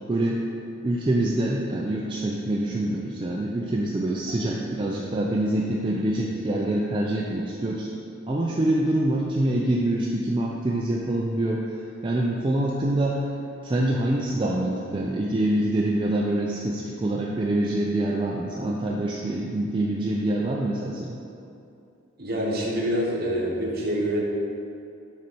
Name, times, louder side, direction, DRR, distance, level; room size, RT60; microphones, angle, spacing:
voice 1, 0.1-0.4 0.8-7.9 8.3-13.2 13.6-21.2, right 1 dB, 25° right, -3 dB, 0.3 m, -25 dB
voice 2, 22.2-24.2, equal, 45° right, -3 dB, 1.0 m, -26 dB
5.9 x 4.1 x 4.5 m, 2.6 s
head